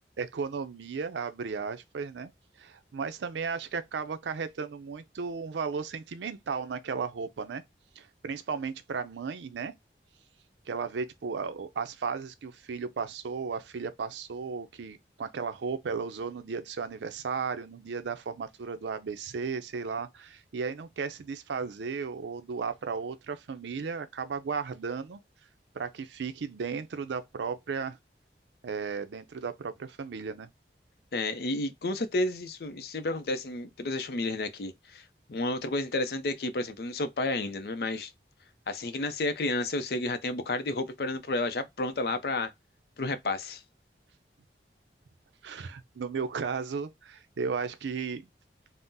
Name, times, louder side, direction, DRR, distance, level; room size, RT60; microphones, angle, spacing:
voice 1, 0.0-2.3 2.6-7.6 8.0-9.7 10.7-25.2 25.7-28.0 28.6-30.5 45.4-48.2, right 5 dB, 85° right, 0.4 m, -35 dB
voice 2, 31.1-35.0 35.3-38.1 38.7-42.5 43.0-43.6, left 2 dB, 60° left, 0.4 m, -31 dB
3.6 x 2.0 x 2.6 m
head